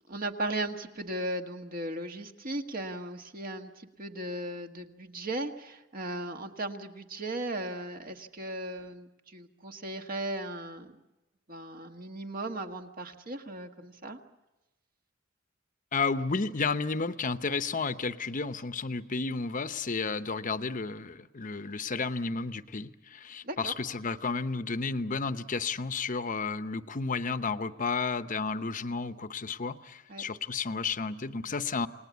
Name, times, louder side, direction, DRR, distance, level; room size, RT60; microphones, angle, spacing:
voice 1, 0.1-10.9 11.5-14.2 23.4-23.7 30.1-30.3, right 1 dB, 45° right, 5 dB, 1.7 m, -37 dB
voice 2, 15.9-31.9, left 4 dB, 40° left, 12 dB, 0.9 m, -32 dB
28.5 x 19.5 x 8.3 m, 1.1 s
head